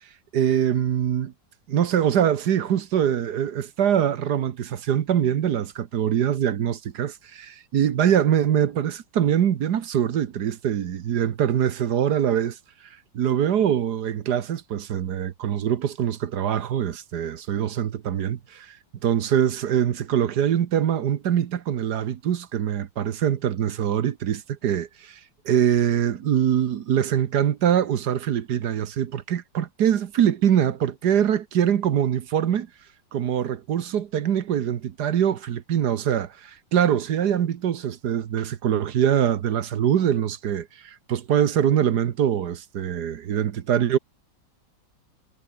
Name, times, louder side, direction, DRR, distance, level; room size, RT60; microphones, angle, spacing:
voice 1, 0.3-1.3 1.7-12.6 13.1-18.8 19.0-25.2 25.4-32.7 33.1-44.0, right 9 dB, 60° right, 1.5 m, -23 dB
omnidirectional pair, 2.0 m